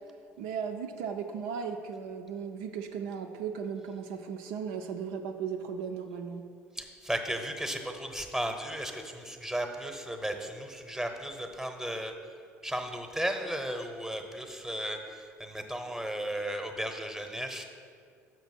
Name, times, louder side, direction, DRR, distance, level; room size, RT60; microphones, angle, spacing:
voice 1, 0.4-6.4, right 6 dB, 65° right, 4 dB, 0.4 m, -36 dB
voice 2, 6.7-12.1 12.6-17.6, right 1 dB, 5° right, 5 dB, 0.9 m, -35 dB
6.6 x 5.9 x 4.3 m, 2.2 s
figure-of-eight pair, 60°, 8 cm